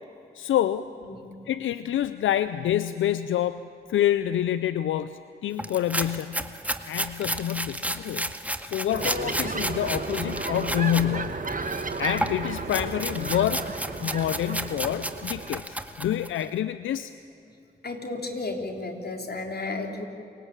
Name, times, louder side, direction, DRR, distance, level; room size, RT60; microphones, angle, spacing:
voice 1, 0.4-0.8 1.5-3.6 3.9-6.5 6.9-8.3 8.6-11.4 12.0-13.7 14.0-17.1, left 11 dB, 85° left, 14 dB, 0.5 m, -27 dB
sound 1, 5.6-11.1 11.4-16.4, right 1 dB, 5° right, 1.8 m, -32 dB
sound 2, 8.9-15.5, right 3 dB, 45° right, 2.0 m, -33 dB
voice 2, 17.8-20.0, left 2 dB, 55° left, 3 dB, 3.9 m, -33 dB
28.5 x 18.0 x 8.9 m, 2.8 s
supercardioid pair, 40°, 20 cm